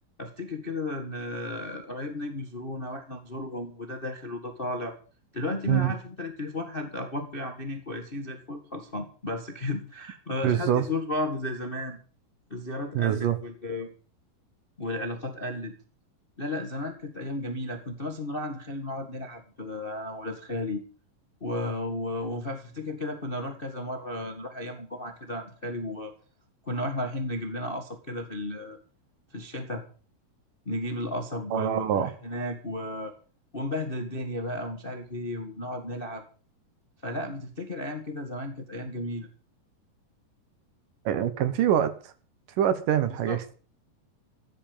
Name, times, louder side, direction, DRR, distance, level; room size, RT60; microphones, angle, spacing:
voice 1, 0.2-4.9 5.3-12.0 12.5-13.9 14.8-15.7 16.4-20.8 21.4-26.1 26.6-28.8 29.3-29.8 30.6-33.1 33.5-36.2 37.0-39.3 43.3-43.4, left 1 dB, 30° left, 1.0 m, -34 dB
voice 2, 10.4-10.9 12.9-13.4 31.5-32.1 41.1-42.1 42.6-43.4, right 10 dB, 70° right, 2.7 m, -25 dB
15.0 x 10.0 x 7.1 m
omnidirectional pair, 4.1 m